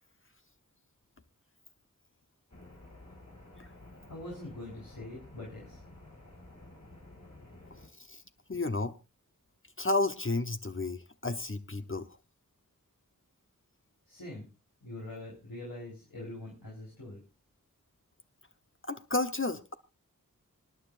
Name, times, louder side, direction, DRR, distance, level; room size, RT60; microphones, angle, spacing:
sound 1, 2.5-7.9, left 2 dB, 55° left, 4.9 m, -52 dB
voice 1, 4.1-5.8 14.1-14.5 14.8-17.2, left 1 dB, 90° left, 4.0 m, -43 dB
voice 2, 8.5-8.9 9.8-12.1 18.8-19.7, left 2 dB, 35° left, 0.9 m, -32 dB
26.0 x 9.9 x 2.5 m
wide cardioid pair, 40°, 34 cm